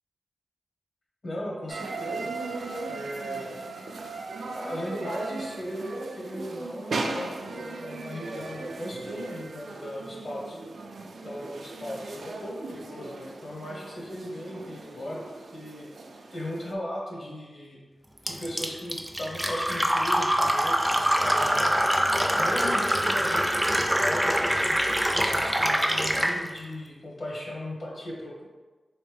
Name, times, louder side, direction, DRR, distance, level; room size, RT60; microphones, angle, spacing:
voice 1, 1.2-2.3 2.9-3.6 4.5-10.6 11.2-15.9 16.3-17.8 18.2-21.7 22.3-28.4, left 1 dB, 60° left, -3 dB, 0.9 m, -37 dB
sound 1, 1.7-16.7, right 3 dB, 85° right, 0.3 m, -37 dB
Fill (with liquid), 18.3-26.4, equal, 5° right, 0.3 m, -24 dB
3.3 x 3.1 x 3.3 m, 1.3 s
wide cardioid pair, 105°, 0 cm